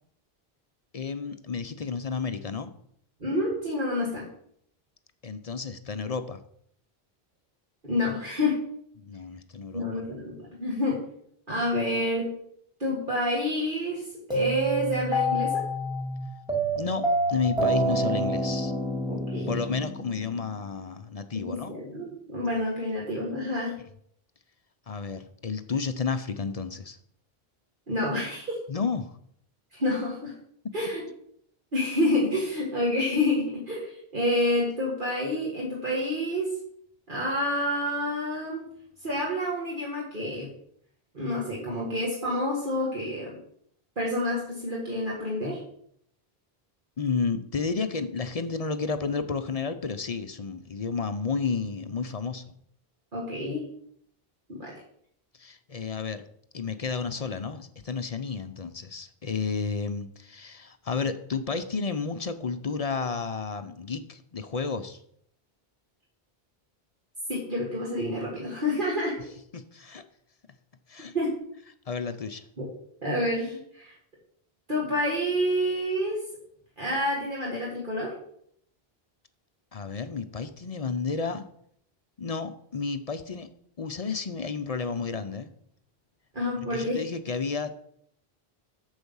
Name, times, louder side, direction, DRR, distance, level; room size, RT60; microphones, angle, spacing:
voice 1, 0.9-2.7 5.2-6.4 9.0-9.9 16.8-18.7 19.5-21.7 24.9-27.0 28.7-29.1 47.0-52.5 55.4-56.2 56.5-65.0 69.5-70.0 70.9-71.1 71.9-72.4 79.7-81.4 82.2-83.5 83.8-85.5 86.6-87.8, left 5 dB, 45° left, 10 dB, 0.6 m, -31 dB
voice 2, 3.2-4.3 7.8-8.6 9.7-11.0 11.5-12.3 12.8-14.0 14.3-15.6 19.1-19.5 21.4-23.8 27.9-28.6 29.7-30.3 30.7-31.0 31.7-36.5 37.1-38.6 39.0-40.5 41.1-43.4 44.0-45.6 53.1-53.7 54.5-54.7 67.3-69.2 71.1-71.4 72.6-72.7 73.0-73.9 74.7-76.2 76.8-78.1 86.3-87.0, left 1 dB, 55° right, -4 dB, 2.0 m, -28 dB
sound 1, 14.3-20.5, right 1 dB, 5° right, 2.3 m, -27 dB
8.1 x 7.2 x 5.5 m, 0.68 s
omnidirectional pair, 1.0 m